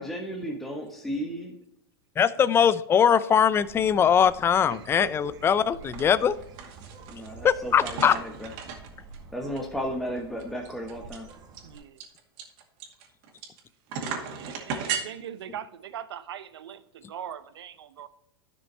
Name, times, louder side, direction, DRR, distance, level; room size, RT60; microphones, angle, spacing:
voice 1, 0.0-1.5 7.1-8.5 9.3-11.3, equal, ahead, 0 dB, 1.3 m, -34 dB
voice 2, 2.2-6.4 7.4-8.1, left 8 dB, 20° left, 16 dB, 0.4 m, -21 dB
Bird, 3.6-11.8, right 4 dB, 30° right, 1.7 m, -48 dB
voice 3, 4.7-5.5 11.6-12.0 14.4-18.1, right 9 dB, 85° right, 13 dB, 0.8 m, -41 dB
sound 1, 5.8-6.0 6.3-7.3 7.7-9.2 9.6-9.7 9.9-10.0 10.4-13.6 13.9-15.0, right 6 dB, 50° right, 2.2 m, -35 dB
10.5 x 6.1 x 4.3 m, 0.77 s
hypercardioid pair, 120°, 13 cm